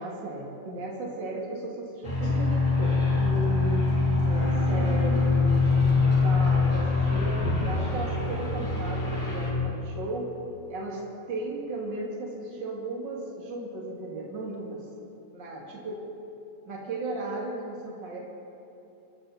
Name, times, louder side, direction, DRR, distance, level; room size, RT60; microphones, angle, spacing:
voice 1, 0.0-3.9 4.3-10.3 10.7-11.0 11.3-14.9 15.3-16.0 16.6-18.2, right 2 dB, 40° right, -2 dB, 2.9 m, -35 dB
sound 1, 2.0-9.5, left 3 dB, 40° left, 5.1 m, -24 dB
24.5 x 13.0 x 4.3 m, 3.0 s
omnidirectional pair, 3.3 m